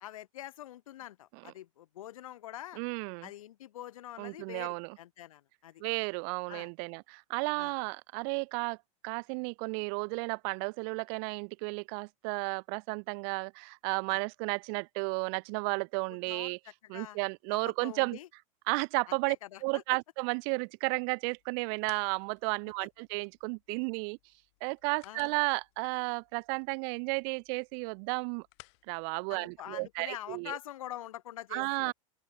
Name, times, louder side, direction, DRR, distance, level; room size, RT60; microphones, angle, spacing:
voice 1, 0.0-2.8 3.2-5.8 6.5-6.7 7.6-7.7 14.1-14.2 16.1-16.6 16.9-17.2 17.5-18.3 19.1-19.8 25.0-25.3 29.3-31.9, left 13 dB, 90° left, 0.9 m, -45 dB
voice 2, 2.7-3.3 4.2-5.0 5.8-8.8 9.0-16.6 16.9-18.2 18.7-19.4 19.6-24.2 24.6-28.5 28.9-30.6 31.5-31.9, right 40 dB or more, 55° right, 0.7 m, -33 dB
sound 1, 21.3-30.2, left 29 dB, 60° left, 5.2 m, -62 dB
open air
supercardioid pair, 130°, 17 cm